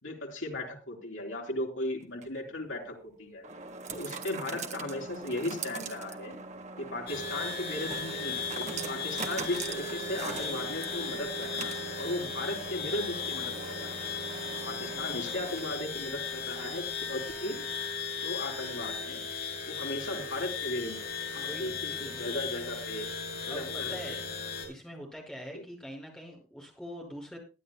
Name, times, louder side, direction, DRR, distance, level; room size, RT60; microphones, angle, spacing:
voice 1, 0.0-3.4 3.9-6.4 6.8-14.0 14.7-17.7 18.2-19.2 19.7-21.0 21.3-23.1 23.5-24.2 25.5-25.6, left 1 dB, 80° left, 0 dB, 4.4 m, -37 dB
sound 1, 2.0-16.0, right 4 dB, 35° right, 1.5 m, -42 dB
sound 2, 7.1-24.7, left 4 dB, 55° left, 6.5 m, -36 dB
voice 2, 21.3-22.2 23.5-24.2 24.7-27.4, equal, 5° left, 0 dB, 5.5 m, -44 dB
22.0 x 10.5 x 2.2 m, 0.31 s
head